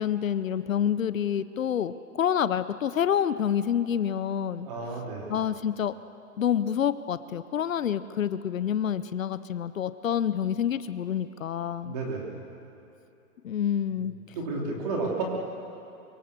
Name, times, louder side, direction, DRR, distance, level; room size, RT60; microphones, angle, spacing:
voice 1, 0.0-4.7 5.3-5.9 6.4-11.9 13.4-14.1, left 9 dB, 65° left, 14 dB, 0.8 m, -27 dB
voice 2, 4.6-5.3 11.8-12.4 13.9-15.2, right 3 dB, 25° right, -1 dB, 3.4 m, -32 dB
24.5 x 23.0 x 6.8 m, 2.7 s
hypercardioid pair, 180°, 44 cm